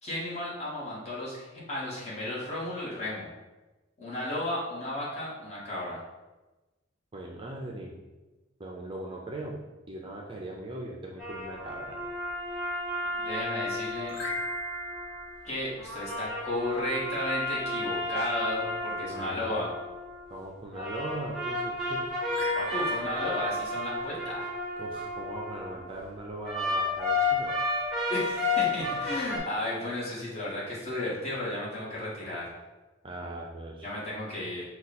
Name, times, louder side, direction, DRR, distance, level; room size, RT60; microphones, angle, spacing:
voice 1, 0.0-3.3 4.0-6.0 13.1-14.1 15.4-19.7 22.5-24.5 28.1-32.5 33.8-34.6, left 1 dB, 35° left, -7 dB, 1.5 m, -34 dB
voice 2, 7.1-7.9 8.6-9.6 9.9-12.0 19.0-19.5 20.3-22.0 24.8-27.5 33.0-33.9, right 1 dB, 25° right, -1 dB, 0.5 m, -39 dB
sound 1, 11.2-15.2 15.8-20.2 20.7-25.9 26.5-29.4, left 2 dB, ahead, 0.9 m, -32 dB
sound 2, 14.0-16.5 22.3-24.9, right 1 dB, 60° left, 1.3 m, -40 dB
5.1 x 2.3 x 4.1 m, 1.1 s
head